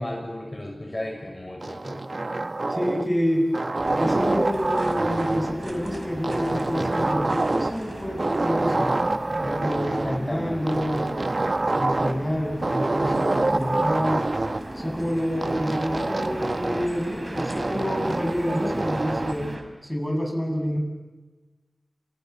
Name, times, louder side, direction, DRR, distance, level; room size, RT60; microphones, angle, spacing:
voice 1, 0.0-2.0 9.9-10.7, left 1 dB, 30° left, 1 dB, 6.3 m, -34 dB
sound 1, 1.6-3.2 3.5-5.6 6.2-7.9 8.2-10.2 10.7-12.3 12.6-14.6 15.4-17.0 17.4-19.4, right 2 dB, 50° right, 1.3 m, -26 dB
voice 2, 2.7-3.5 4.0-8.9 9.4-11.1 11.7-14.2 14.7-19.5 19.8-20.8, equal, 10° left, 1 dB, 7.8 m, -28 dB
sound 2, 3.8-19.6, right 1 dB, 35° right, 5.1 m, -37 dB
29.5 x 28.0 x 7.2 m, 1.2 s
wide cardioid pair, 75°, 0 cm